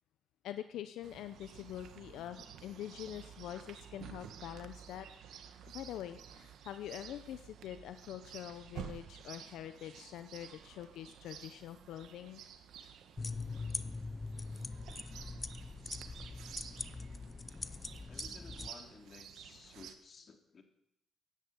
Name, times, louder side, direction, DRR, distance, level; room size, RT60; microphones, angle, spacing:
voice 1, 0.4-5.1 5.3-12.4, left 11 dB, 85° left, 10 dB, 0.8 m, -45 dB
Chirp tweet, 1.0-20.0, right 8 dB, 75° right, 1.6 m, -52 dB
sound 1, 13.2-18.7, left 3 dB, 25° left, 0.8 m, -42 dB
voice 2, 18.1-20.6, left 5 dB, 45° left, 5 dB, 3.1 m, -56 dB
16.0 x 10.5 x 8.1 m, 0.77 s
cardioid pair, 90°, 0 cm